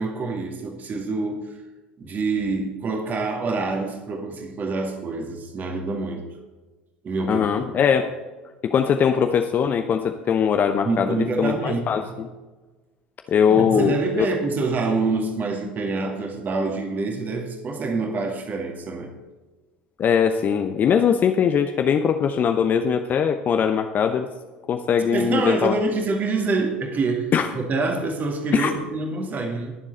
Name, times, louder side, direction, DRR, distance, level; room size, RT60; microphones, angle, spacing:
voice 1, 0.0-1.6 2.0-6.2 7.0-7.6 10.8-11.8 13.5-19.1 25.1-27.3 27.5-29.8, right 3 dB, 35° right, 3 dB, 2.1 m, -26 dB
voice 2, 7.3-8.1 8.6-12.3 13.3-14.3 20.0-24.3 24.7-25.7 27.3-27.5 28.5-28.7, left 7 dB, 35° left, 6 dB, 0.8 m, -21 dB
21.5 x 7.4 x 4.0 m, 1.2 s
figure-of-eight pair, 70°, 5 cm